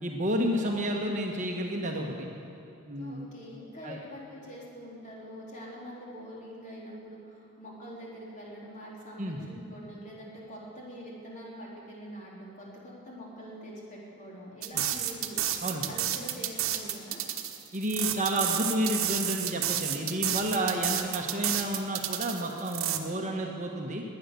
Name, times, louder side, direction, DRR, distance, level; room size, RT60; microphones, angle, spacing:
voice 1, 0.0-2.3 2.9-3.3 3.8-4.0 9.2-9.4 14.7-14.8 15.6-15.9 17.7-24.0, right 1 dB, 35° right, 1 dB, 1.3 m, -30 dB
voice 2, 3.0-17.2, equal, 35° left, -4 dB, 3.8 m, -44 dB
sound 1, 14.6-23.0, right 11 dB, 75° right, 1.1 m, -31 dB
20.5 x 9.3 x 6.9 m, 2.9 s
head